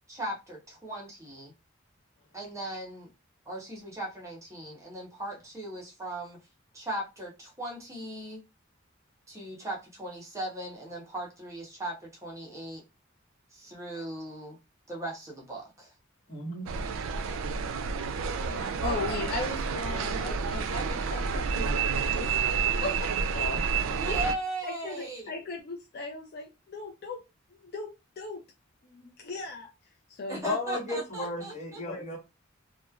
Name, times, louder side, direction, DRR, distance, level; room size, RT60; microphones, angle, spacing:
voice 1, 0.1-1.5 2.3-3.1 3.5-6.4 6.7-8.4 9.3-12.8 13.5-14.6 14.9-15.9 24.0-25.3 30.3-31.8, right 1 dB, 15° right, 0.7 m, -38 dB
voice 2, 16.3-16.7 18.7-19.0 23.3-23.6 30.4-32.2, left 2 dB, 35° left, 1.2 m, -34 dB
sound 1, 16.7-24.3, right 5 dB, 80° right, 0.4 m, -29 dB
voice 3, 18.5-23.2 24.8-27.2 27.5-27.9 28.2-28.4 28.8-29.7 30.1-30.5 31.9-32.2, left 2 dB, 50° left, 0.4 m, -38 dB
3.0 x 2.2 x 2.3 m
head